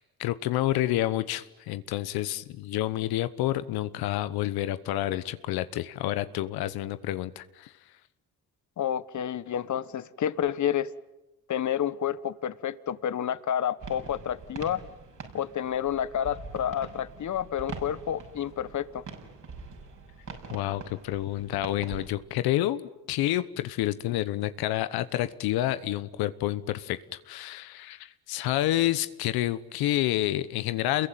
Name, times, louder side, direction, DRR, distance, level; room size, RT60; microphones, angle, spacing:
voice 1, 0.0-7.7 20.5-31.1, left 14 dB, 85° left, 1.0 m, -29 dB
voice 2, 8.8-10.9 11.5-14.8 15.3-19.0, left 10 dB, 50° left, 1.3 m, -29 dB
sound 1, 13.8-22.1, right 5 dB, 55° right, 6.5 m, -44 dB
28.5 x 22.5 x 9.3 m
cardioid pair, 75°, 37 cm